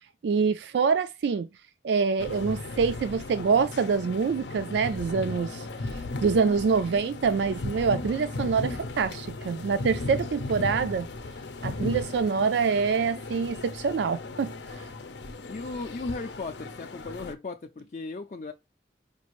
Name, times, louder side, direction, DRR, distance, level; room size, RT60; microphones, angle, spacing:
voice 1, 0.2-1.5 1.8-5.7 5.9-11.1 11.6-14.5, right 5 dB, 80° right, 0.3 m, -25 dB
sound 1, 2.2-17.3, left 2 dB, 90° left, 0.6 m, -36 dB
voice 2, 15.5-18.5, left 3 dB, 45° left, 0.4 m, -36 dB
5.2 x 2.5 x 3.0 m
head